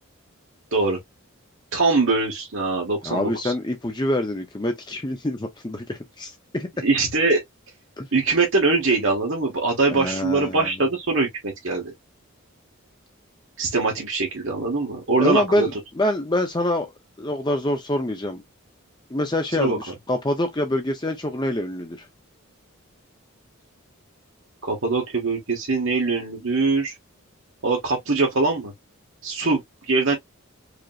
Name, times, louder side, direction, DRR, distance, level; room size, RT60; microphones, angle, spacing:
voice 1, 1.7-3.5 6.8-7.4 8.1-11.9 13.6-15.7 19.6-19.8 24.6-26.9 27.6-28.7 29.2-30.2, right 3 dB, 65° right, 1.5 m, -22 dB
voice 2, 3.0-6.7 8.0-8.1 9.9-10.7 15.2-16.9 17.2-18.4 19.1-22.1, left 1 dB, 20° left, 0.7 m, -25 dB
5.0 x 2.9 x 2.4 m
head